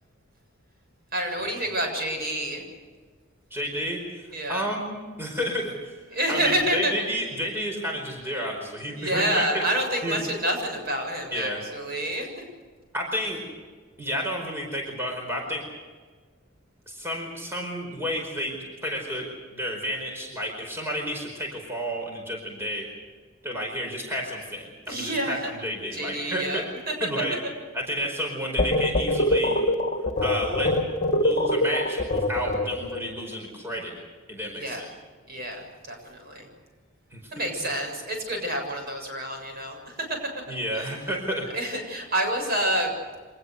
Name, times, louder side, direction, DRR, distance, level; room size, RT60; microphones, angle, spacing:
voice 1, 1.1-2.6 4.3-4.7 6.1-6.9 9.0-12.4 24.9-25.5 25.9-26.9 34.6-34.8 35.3-36.5 37.3-40.2 40.7-40.9 41.5-42.9, right 1 dB, 50° right, 3 dB, 7.3 m, -28 dB
voice 2, 3.5-6.0 6.3-9.7 10.0-10.2 11.3-11.6 12.9-13.4 14.0-15.6 16.9-19.2 19.5-22.9 23.4-26.7 27.0-27.4 27.7-29.6 30.2-30.8 31.1-33.9 34.3-34.9 37.1-37.3 40.5-41.5, equal, 10° right, 1 dB, 4.8 m, -31 dB
sound 1, 28.6-33.0, left 1 dB, 35° left, 2.7 m, -24 dB
25.5 x 20.0 x 6.7 m, 1.5 s
head